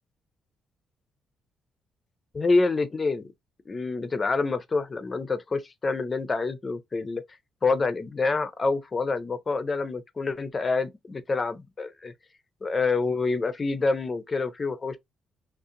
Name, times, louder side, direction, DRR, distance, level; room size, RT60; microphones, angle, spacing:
voice 1, 2.3-3.3 3.7-7.2 7.6-12.1 12.6-15.0, left 3 dB, 30° left, 0.5 m, -27 dB
2.5 x 2.0 x 2.7 m
cardioid pair, 90°, 0 cm